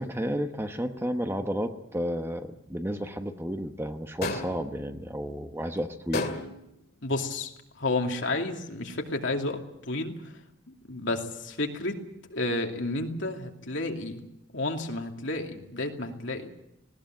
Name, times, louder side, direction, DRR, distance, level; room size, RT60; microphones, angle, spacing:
voice 1, 0.0-6.3, equal, 10° right, 6 dB, 1.1 m, -32 dB
sound 1, 4.2-4.7 6.1-6.7, left 2 dB, 50° left, 2.3 m, -31 dB
voice 2, 7.0-7.5 7.8-9.6 9.9-10.3 10.7-12.0 12.3-14.2 14.5-16.5, left 2 dB, 65° left, 3 dB, 2.7 m, -31 dB
19.5 x 17.5 x 9.2 m, 0.83 s
head